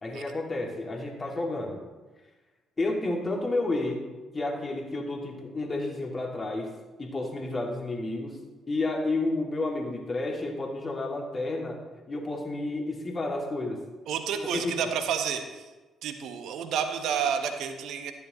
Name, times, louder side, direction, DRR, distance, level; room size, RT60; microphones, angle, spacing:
voice 1, 0.0-1.8 2.8-4.0 4.3-8.4 8.7-11.8 12.1-13.8 14.5-14.9, left 2 dB, 30° left, 0 dB, 2.6 m, -31 dB
voice 2, 14.1-15.7 16.0-18.1, right 7 dB, 60° right, 6 dB, 1.3 m, -30 dB
14.0 x 12.0 x 3.2 m, 1.2 s
figure-of-eight pair, 45°, 0 cm